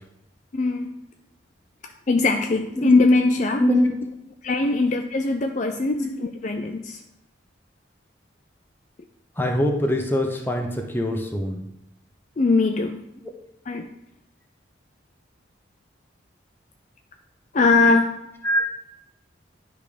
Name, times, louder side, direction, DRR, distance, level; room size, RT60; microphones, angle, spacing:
voice 1, 0.5-0.9 2.1-3.6 4.4-7.0 12.4-13.0 13.7-13.9 17.5-18.1, left 3 dB, 40° left, 5 dB, 0.4 m, -21 dB
voice 2, 3.6-3.9 6.0-6.1 9.4-11.7 18.4-18.7, left 1 dB, 10° left, 2 dB, 0.8 m, -23 dB
10.5 x 3.5 x 5.0 m, 0.84 s
head